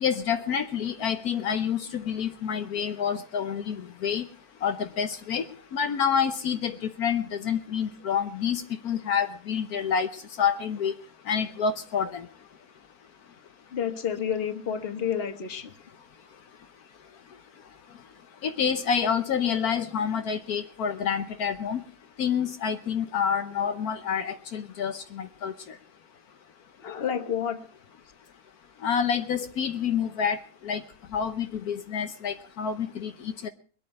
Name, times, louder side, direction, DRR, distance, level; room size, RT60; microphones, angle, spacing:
voice 1, 0.0-4.3 4.6-5.4 5.7-10.1 10.4-10.9 11.3-12.3 18.4-21.8 22.2-25.5 28.8-30.4 30.6-30.8 31.1-33.5, left 7 dB, 75° left, 8 dB, 1.4 m, -28 dB
voice 2, 13.7-15.7 26.8-27.6, left 8 dB, 40° left, 8 dB, 1.4 m, -30 dB
22.5 x 8.7 x 5.3 m, 0.42 s
omnidirectional pair, 1.6 m